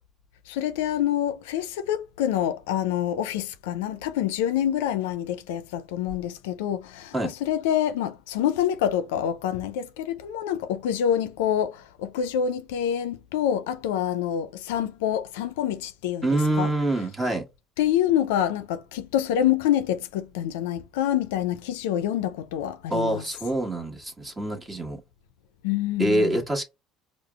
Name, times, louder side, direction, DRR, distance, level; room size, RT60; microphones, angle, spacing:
voice 1, 0.5-16.3 16.6-16.7 17.8-23.2 25.6-26.4, left 10 dB, 85° left, 0.4 m, -26 dB
voice 2, 16.2-17.5 22.9-25.0 26.0-26.6, right 1 dB, 20° right, 1.3 m, -25 dB
4.8 x 2.0 x 2.3 m
supercardioid pair, 80°, 0 cm